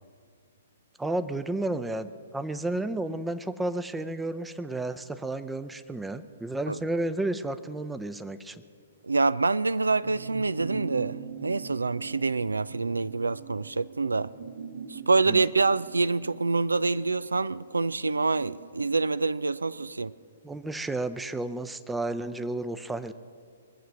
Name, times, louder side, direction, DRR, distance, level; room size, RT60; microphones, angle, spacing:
voice 1, 1.0-8.6 15.3-15.4 20.4-23.1, right 2 dB, 5° right, 0.6 m, -32 dB
voice 2, 9.0-14.3 14.9-20.1, right 3 dB, 75° right, 0.3 m, -26 dB
sound 1, 10.0-19.9 20.2-20.3, right 6 dB, 60° right, 1.2 m, -43 dB
23.5 x 7.8 x 6.2 m
figure-of-eight pair, 120°, 0 cm